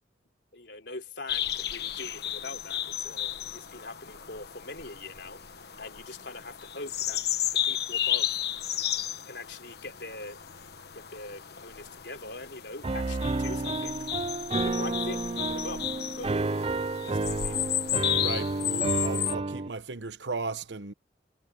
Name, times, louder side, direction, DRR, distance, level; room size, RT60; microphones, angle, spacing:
voice 1, 0.5-5.4 5.8-7.2 7.6-8.3 9.3-10.4 10.9-13.9 14.6-15.8 16.2-16.4 17.0-17.6, left 2 dB, 75° left, 3.5 m, -42 dB
sound 1, 1.3-19.3, left 11 dB, 60° left, 1.3 m, -33 dB
Piano, 12.8-19.7, right 3 dB, 35° right, 0.5 m, -30 dB
voice 2, 18.2-20.9, right 3 dB, 80° right, 1.0 m, -36 dB
head